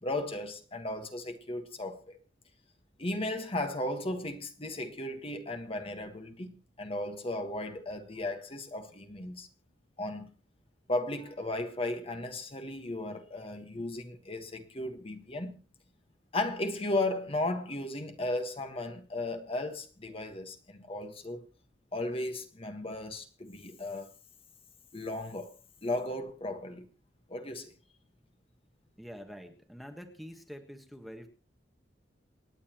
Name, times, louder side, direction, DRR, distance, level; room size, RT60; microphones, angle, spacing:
voice 1, 0.0-2.2 3.0-9.5 10.0-10.3 10.9-15.6 16.3-21.4 21.9-24.1 24.9-25.5 25.8-26.8 27.3-27.7, left 2 dB, 30° left, 1.5 m, -35 dB
voice 2, 29.0-31.3, equal, ahead, 1.5 m, -46 dB
28.0 x 9.8 x 3.0 m
head